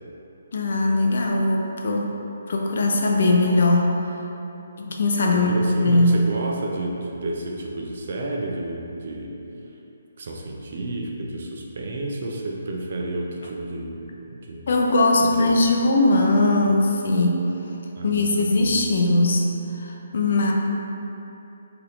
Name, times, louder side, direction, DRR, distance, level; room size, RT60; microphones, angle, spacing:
voice 1, 0.5-2.1 2.5-4.0 4.8-6.2 14.7-17.5 18.0-19.5 19.7-20.5, left 2 dB, 45° left, 0 dB, 0.3 m, -20 dB
voice 2, 5.3-9.4 10.2-14.0 14.3-14.7 15.2-15.6 18.0-18.7, right 2 dB, 40° right, 0 dB, 0.3 m, -31 dB
2.8 x 2.4 x 3.4 m, 2.9 s
hypercardioid pair, 180°, 0 cm